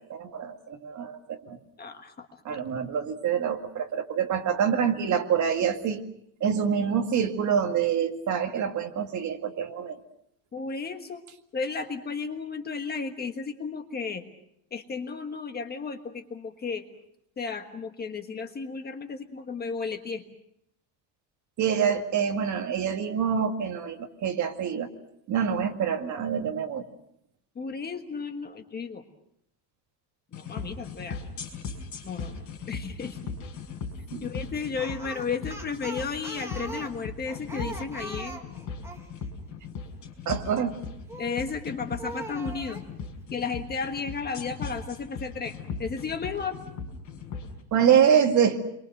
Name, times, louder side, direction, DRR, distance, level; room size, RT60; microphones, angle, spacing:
voice 1, 0.0-1.6 2.4-6.0 6.4-10.0 21.6-24.9 25.3-26.9 34.1-34.3 40.3-40.8 47.7-48.6, right 7 dB, 40° right, 5 dB, 2.1 m, -26 dB
voice 2, 1.8-2.3 2.5-2.6 10.5-11.2 11.5-14.2 14.7-16.8 17.4-20.2 27.5-29.0 30.3-31.2 32.0-32.3 32.7-33.2 34.2-38.6 41.2-42.8 43.3-46.6, left 5 dB, 20° left, 5 dB, 1.4 m, -33 dB
sound 1, 30.3-47.5, left 5 dB, 40° left, 5.5 m, -38 dB
Speech, 34.8-39.1 41.1-41.5 42.0-42.9, right 2 dB, 5° right, 1.9 m, -40 dB
29.5 x 23.5 x 6.6 m, 0.76 s
cardioid pair, 175°, 45 cm